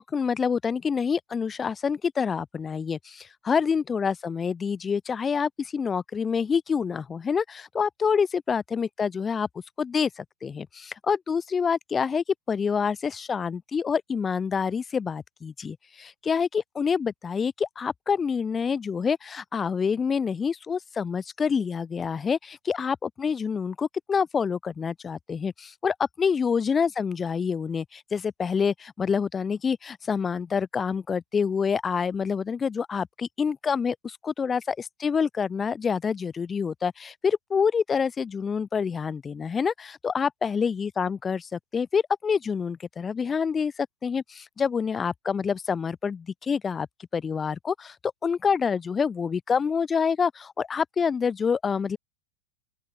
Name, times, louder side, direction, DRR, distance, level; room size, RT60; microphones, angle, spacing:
voice 1, 0.0-9.5 9.8-46.9 47.1-47.9 48.2-52.0, left 6 dB, 20° left, 1.3 m, -27 dB
open air
figure-of-eight pair, 90°, 0 cm